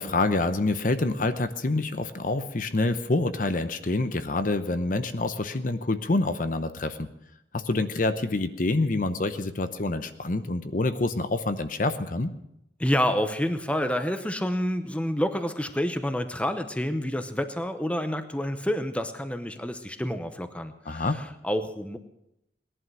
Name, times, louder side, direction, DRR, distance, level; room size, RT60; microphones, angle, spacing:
voice 1, 0.0-7.1 7.5-12.3 20.9-21.2, left 2 dB, 50° left, 10 dB, 0.8 m, -27 dB
voice 2, 12.8-22.0, equal, 5° left, 9 dB, 0.8 m, -28 dB
18.5 x 11.0 x 6.2 m, 0.82 s
head